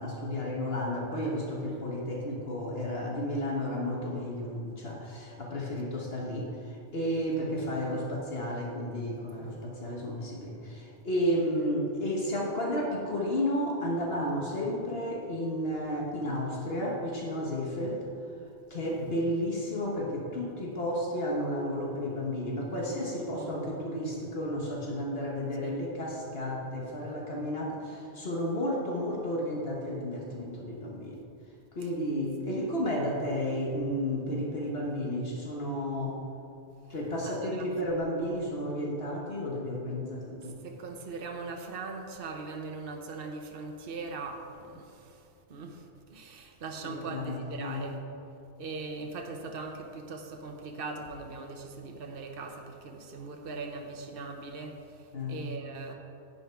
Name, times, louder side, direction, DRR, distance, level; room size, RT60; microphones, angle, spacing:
voice 1, 0.0-18.0 18.7-31.2 31.7-36.2 36.9-40.6 46.8-47.9 55.1-55.4, equal, 65° left, -2 dB, 1.6 m, -32 dB
voice 2, 7.9-8.2 9.3-9.6 18.8-19.2 23.1-23.6 25.6-25.8 31.8-31.9 37.2-37.7 40.4-48.0 48.6-55.9, right 3 dB, 60° right, 3 dB, 1.1 m, -41 dB
11.0 x 8.7 x 4.6 m, 2.7 s
omnidirectional pair, 1.1 m